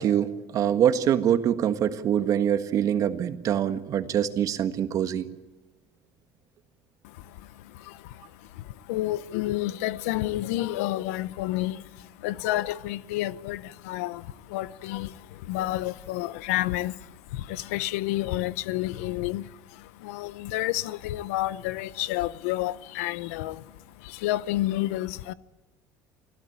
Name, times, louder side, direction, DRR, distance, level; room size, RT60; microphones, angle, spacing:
voice 1, 0.0-5.3, right 9 dB, 50° right, 1.5 m, -24 dB
voice 2, 7.0-25.3, left 16 dB, 90° left, 0.7 m, -30 dB
25.5 x 15.5 x 8.6 m
supercardioid pair, 105°, 7 cm